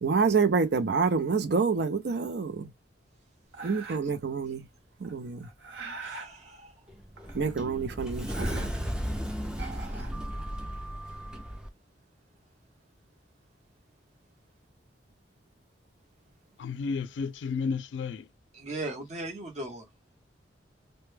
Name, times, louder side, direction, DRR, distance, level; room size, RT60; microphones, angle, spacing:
voice 1, 0.0-2.7 3.6-4.6 5.0-5.4 7.3-8.7, right 5 dB, 60° right, 0.5 m, -27 dB
sound 1, 3.5-4.2 5.0-6.3 7.2-7.8 8.1-9.0 9.5-10.7, right 4 dB, 80° right, 1.1 m, -43 dB
voice 2, 6.0-6.7 18.5-19.9, right 2 dB, 40° right, 0.9 m, -38 dB
Sliding door, 6.9-11.7, equal, 5° right, 0.4 m, -35 dB
voice 3, 16.6-18.2, left 5 dB, 80° left, 0.3 m, -32 dB
2.2 x 2.1 x 3.1 m
head